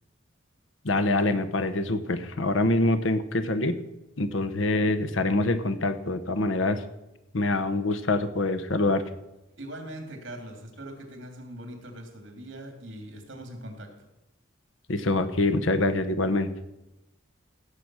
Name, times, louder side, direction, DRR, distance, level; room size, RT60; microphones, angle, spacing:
voice 1, 0.8-3.7 4.2-6.8 7.3-9.0 14.9-16.5, left 2 dB, 80° left, 10 dB, 1.0 m, -25 dB
voice 2, 9.6-13.9, right 1 dB, 65° right, 3 dB, 3.0 m, -41 dB
16.5 x 7.1 x 6.3 m, 0.95 s
head